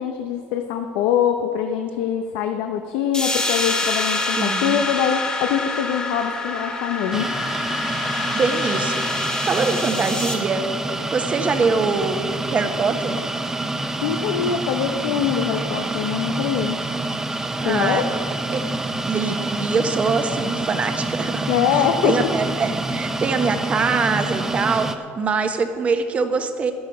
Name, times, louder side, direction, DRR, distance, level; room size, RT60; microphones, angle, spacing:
voice 1, 0.0-7.3 14.0-16.8 17.6-18.0 21.5-22.3, left 8 dB, 85° left, 5 dB, 0.8 m, -23 dB
sound 1, 3.1-10.3, left 2 dB, 20° left, 1.8 m, -26 dB
voice 2, 4.4-4.8 8.3-10.6 11.1-13.2 17.6-18.0 18.5-18.6 19.1-24.9 25.1-26.7, right 4 dB, 30° right, 7 dB, 1.1 m, -23 dB
sound 2, 7.1-24.9, right 2 dB, 10° right, 0.7 m, -27 dB
12.0 x 10.5 x 6.0 m, 2.2 s
cardioid pair, 130°, 4 cm